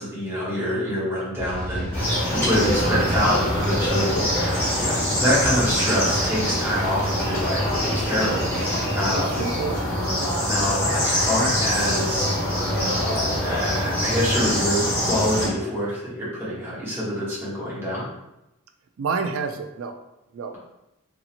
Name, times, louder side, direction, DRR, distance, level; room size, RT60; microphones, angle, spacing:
voice 1, 0.0-9.4 10.4-12.3 13.4-18.1, equal, 10° right, -8 dB, 0.9 m, -26 dB
sound 1, 1.4-9.7, equal, 45° left, 0.9 m, -34 dB
sound 2, 1.9-15.5, equal, 10° left, 1.2 m, -24 dB
voice 2, 9.1-9.8 10.1-10.3 19.0-20.0 20.3-20.6, right 5 dB, 75° right, 7 dB, 0.3 m, -29 dB
2.8 x 2.7 x 2.5 m, 0.89 s
head